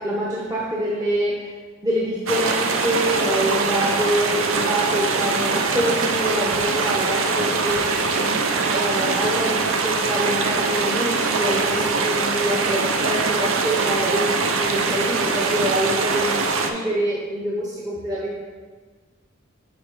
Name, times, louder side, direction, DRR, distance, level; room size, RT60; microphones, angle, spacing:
voice 1, 0.0-1.5 1.8-18.4, right 1 dB, 20° right, -6 dB, 0.8 m, -25 dB
sound 1, 2.3-16.7, right 4 dB, 90° right, 0.5 m, -23 dB
7.8 x 4.5 x 3.3 m, 1.4 s
head